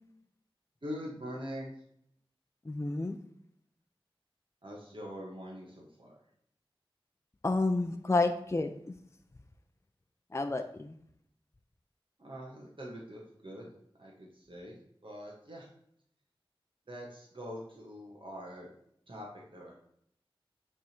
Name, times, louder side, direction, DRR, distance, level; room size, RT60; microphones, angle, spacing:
voice 1, 0.8-1.8 4.6-6.2 10.5-10.6 12.2-13.7 14.0-14.8 15.0-15.7 16.9-18.7 19.1-19.7, equal, 65° right, -3 dB, 1.5 m, -44 dB
voice 2, 2.6-3.2 7.4-8.9 10.3-11.0, left 3 dB, 30° left, 6 dB, 0.5 m, -30 dB
9.0 x 3.6 x 4.4 m, 0.69 s
wide cardioid pair, 60°, 10 cm